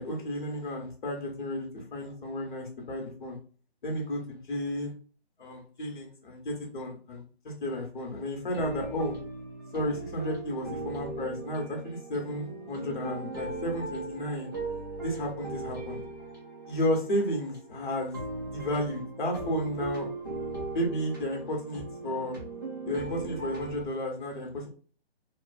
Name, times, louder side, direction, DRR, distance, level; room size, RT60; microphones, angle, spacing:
voice 1, 0.0-3.4 3.8-4.9 5.4-9.1 9.7-14.5 15.0-16.0 16.7-18.2 18.4-20.0 20.7-22.4 22.9-24.7, equal, 50° left, 1 dB, 1.0 m, -33 dB
sound 1, 8.5-23.9, right 3 dB, 20° right, 0.3 m, -38 dB
2.5 x 2.3 x 2.3 m, 0.41 s
hypercardioid pair, 160°, 32 cm